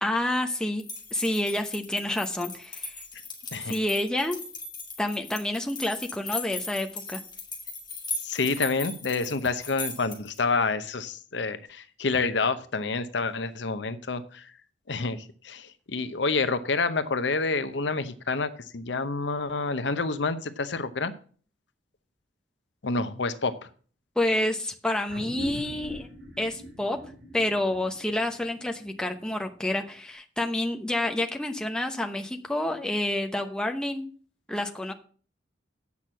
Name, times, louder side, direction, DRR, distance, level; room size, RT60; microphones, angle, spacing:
voice 1, 0.0-0.8 1.1-2.9 3.6-4.4 5.0-7.2 24.2-26.1 26.4-27.0 27.3-34.1 34.5-34.9, left 1 dB, 5° left, 3 dB, 0.9 m, -28 dB
sound 1, 0.8-10.4, left 3 dB, 25° left, 2.9 m, -38 dB
voice 2, 8.2-14.5 14.9-21.1 22.8-23.7, left 4 dB, 70° left, 12 dB, 0.8 m, -28 dB
sound 2, 25.1-30.0, left 1 dB, 85° right, 3.9 m, -42 dB
8.4 x 6.1 x 7.4 m, 0.43 s
head